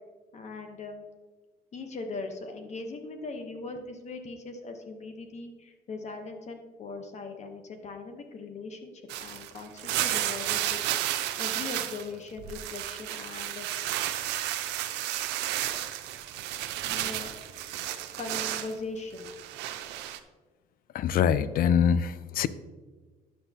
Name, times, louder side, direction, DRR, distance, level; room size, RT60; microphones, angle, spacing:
voice 1, 0.3-1.0 1.7-13.7 16.9-17.3 18.2-19.3, left 3 dB, 40° left, 0.9 m, -40 dB
sound 1, 9.1-12.1 12.4-18.7 19.2-20.2, right 13 dB, 90° right, 0.5 m, -32 dB
voice 2, 20.9-22.5, left 8 dB, 60° left, 0.4 m, -24 dB
10.0 x 6.9 x 2.8 m
cardioid pair, 110°, 17 cm